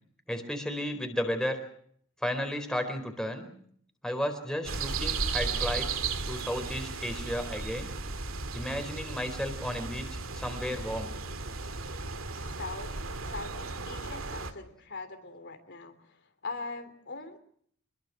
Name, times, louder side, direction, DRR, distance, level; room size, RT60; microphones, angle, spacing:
voice 1, 0.3-1.6 2.2-3.5 4.0-7.9 8.5-10.1 10.3-11.1, equal, 5° left, 6 dB, 4.5 m, -33 dB
sound 1, 4.6-14.5, right 4 dB, 70° right, 2.4 m, -35 dB
voice 2, 12.3-17.4, left 3 dB, 55° left, 7 dB, 3.3 m, -42 dB
27.0 x 22.0 x 6.1 m, 0.63 s
head